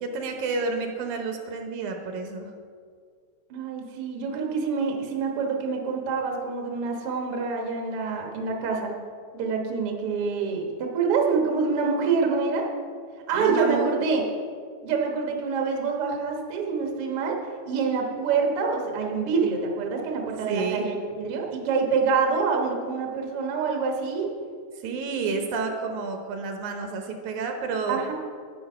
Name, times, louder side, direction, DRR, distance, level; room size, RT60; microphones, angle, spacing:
voice 1, 0.0-2.5 13.3-13.9 20.5-20.9 24.8-28.0, right 4 dB, 80° right, 4 dB, 2.4 m, -30 dB
voice 2, 3.5-8.9 9.3-12.7 13.3-14.2 14.8-17.4 17.7-24.3 27.9-28.1, right 5 dB, 55° right, 1 dB, 2.0 m, -26 dB
8.8 x 8.6 x 5.5 m, 2.1 s
omnidirectional pair, 3.4 m